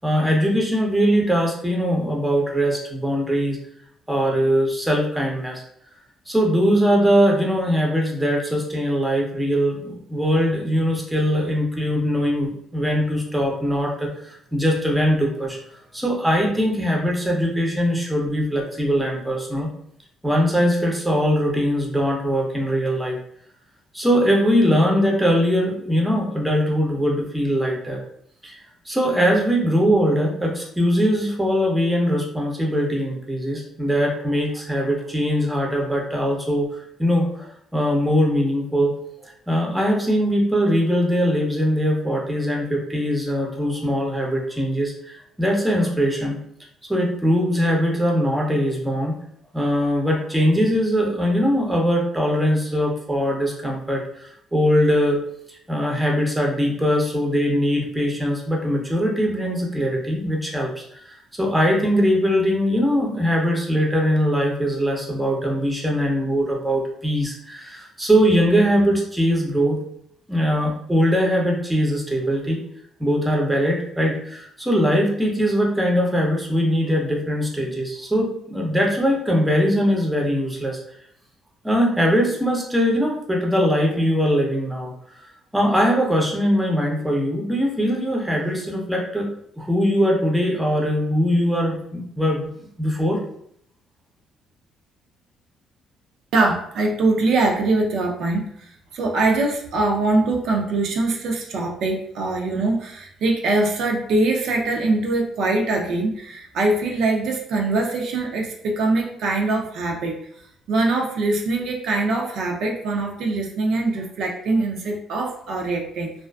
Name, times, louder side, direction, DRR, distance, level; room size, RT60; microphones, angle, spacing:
voice 1, 0.0-3.6 4.1-5.6 6.3-15.6 15.9-19.7 20.2-23.2 23.9-28.0 28.4-37.5 37.7-38.9 39.2-46.4 46.9-49.2 49.5-55.2 55.5-69.8 70.3-72.6 73.0-80.8 81.6-84.9 85.5-89.3 89.6-92.5 92.8-93.2, equal, 5° right, -2 dB, 0.5 m, -21 dB
voice 2, 96.3-110.2 110.7-116.1, right 2 dB, 70° right, 1 dB, 0.4 m, -23 dB
2.4 x 2.3 x 2.2 m, 0.69 s
cardioid pair, 120°, 0 cm